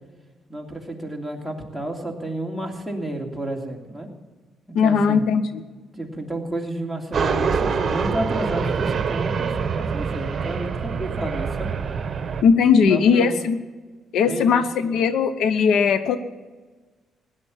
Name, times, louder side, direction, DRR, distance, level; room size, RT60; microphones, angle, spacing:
voice 1, 0.5-4.1 4.7-5.2 5.9-11.7 12.6-13.4 14.2-15.0, right 1 dB, ahead, 2 dB, 2.9 m, -31 dB
voice 2, 4.7-5.6 12.4-13.6 14.1-16.2, left 6 dB, 80° left, 11 dB, 0.9 m, -18 dB
sound 1, 7.1-12.4, right 6 dB, 45° right, 1.3 m, -25 dB
16.5 x 10.5 x 7.2 m, 1.3 s
cardioid pair, 90°, 0 cm